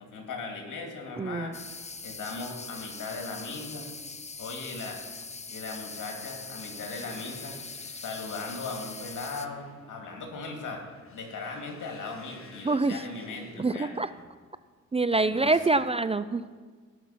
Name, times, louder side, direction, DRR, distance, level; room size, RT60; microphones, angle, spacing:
voice 1, 0.0-1.6 2.0-3.9 4.4-5.0 5.5-7.6 8.0-10.8 11.1-13.9 15.3-15.5, left 3 dB, 75° left, 2 dB, 2.5 m, -38 dB
voice 2, 1.2-1.5 12.6-13.0 13.6-14.1 14.9-16.5, right 3 dB, 20° right, 13 dB, 0.4 m, -25 dB
sound 1, 1.5-9.5, left 4 dB, 20° left, 0.7 m, -42 dB
sound 2, 6.5-14.3, left 3 dB, 45° left, 1.6 m, -56 dB
17.0 x 5.9 x 5.8 m, 1.5 s
cardioid pair, 70°, 31 cm